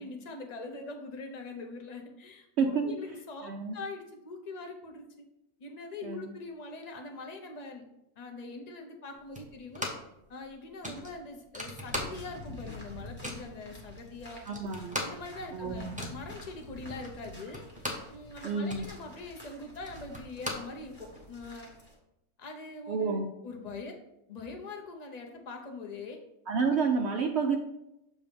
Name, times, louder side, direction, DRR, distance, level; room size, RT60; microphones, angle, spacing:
voice 1, 0.0-5.2 5.6-7.8 8.2-9.9 10.3-14.5 15.0-17.7 18.1-21.7 22.4-24.0 24.3-26.2 26.5-26.6, left 3 dB, 40° left, 3 dB, 0.6 m, -43 dB
voice 2, 3.4-3.8 6.0-6.2 14.5-15.1 15.5-16.1 18.4-18.9 22.9-23.3 26.5-27.6, right 5 dB, 65° right, 3 dB, 0.7 m, -29 dB
sound 1, 9.3-10.2 10.4-10.5 10.8-12.5 12.8-13.5 14.0-14.1 14.3-18.2 18.5-21.3, left 1 dB, 10° right, 0.6 m, -39 dB
sound 2, 11.8-21.9, left 1 dB, 10° left, 1.3 m, -48 dB
7.2 x 2.7 x 5.1 m, 0.86 s
omnidirectional pair, 1.6 m